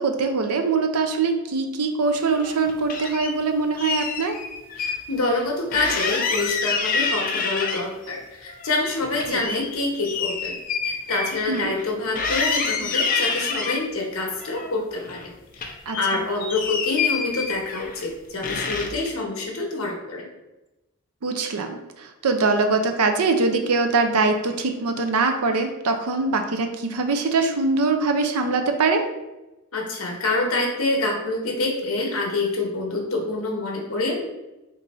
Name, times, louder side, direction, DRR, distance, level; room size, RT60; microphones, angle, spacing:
voice 1, 0.0-4.4 9.3-9.4 11.5-11.7 15.9-16.0 21.2-21.8 22.2-29.0, right 3 dB, 90° right, 5 dB, 0.6 m, -22 dB
sound 1, 2.3-3.3 3.8-5.0 5.3-5.4 5.7-8.1 8.5-11.9 12.2-13.8 14.4-15.3 15.5-18.1 18.4-19.1, left 5 dB, 40° left, 0.4 m, -27 dB
voice 2, 4.8-10.5 10.8-20.3 29.7-34.3, left 2 dB, 65° left, 1 dB, 0.9 m, -26 dB
3.8 x 2.6 x 4.2 m, 1.0 s
head